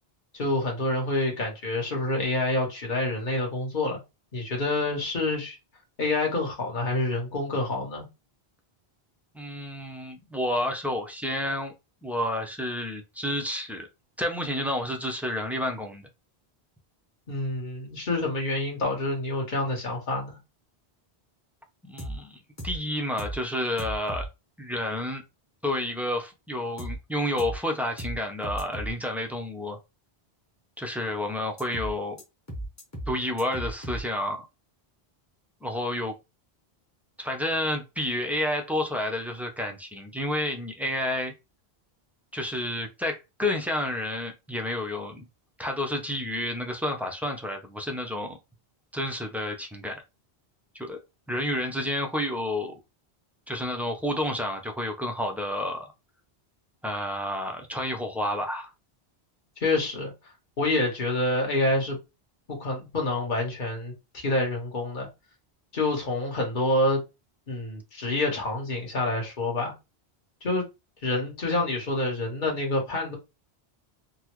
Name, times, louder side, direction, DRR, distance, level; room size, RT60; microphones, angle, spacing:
voice 1, 0.3-4.0 4.3-5.6 6.0-8.1 17.3-20.4 59.6-60.1 60.6-62.0 62.5-65.1 65.7-67.0 67.5-69.7 70.4-70.6 71.0-73.2, left 2 dB, 50° left, 1.3 m, -27 dB
voice 2, 9.3-11.7 12.0-13.9 14.2-16.1 21.8-22.4 22.6-24.3 24.6-25.2 25.6-29.8 30.8-32.2 33.1-34.5 35.6-36.1 37.2-41.3 42.3-45.2 45.6-48.4 48.9-50.0 50.7-51.0 51.3-52.7 53.5-55.9 56.8-58.7, left 1 dB, 5° right, 0.3 m, -30 dB
sound 1, 22.0-22.2 22.6-22.8 23.2-23.4 23.8-24.3 26.8-27.0 27.4-27.6 28.0-28.2 28.4-28.9 31.6-31.9 32.2-32.3 32.5-33.1 33.4-34.0, right 1 dB, 15° left, 0.9 m, -35 dB
3.8 x 2.1 x 3.0 m
omnidirectional pair, 1.1 m